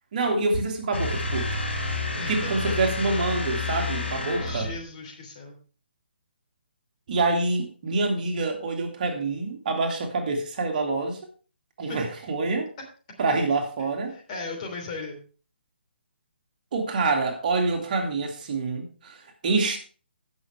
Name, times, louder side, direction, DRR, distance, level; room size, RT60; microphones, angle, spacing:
voice 1, 0.1-1.5 2.3-4.7 7.1-11.2 11.8-12.7 13.2-14.1 16.7-19.8, right 3 dB, 45° right, 2.3 m, -26 dB
sound 1, 0.9-4.9, left 2 dB, 90° left, 4.6 m, -29 dB
voice 2, 2.1-2.7 4.4-5.6 11.8-12.0 14.1-15.2, left 3 dB, 40° left, 3.2 m, -37 dB
16.5 x 6.1 x 3.3 m
figure-of-eight pair, 145°, 6 cm